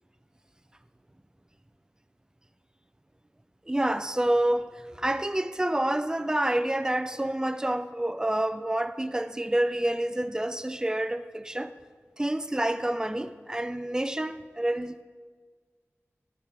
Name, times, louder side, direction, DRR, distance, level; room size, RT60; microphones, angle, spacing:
voice 1, 3.7-11.7 12.2-15.0, right 1 dB, 15° right, 0.4 m, -28 dB
10.5 x 8.8 x 3.3 m
wide cardioid pair, 65°, 5 cm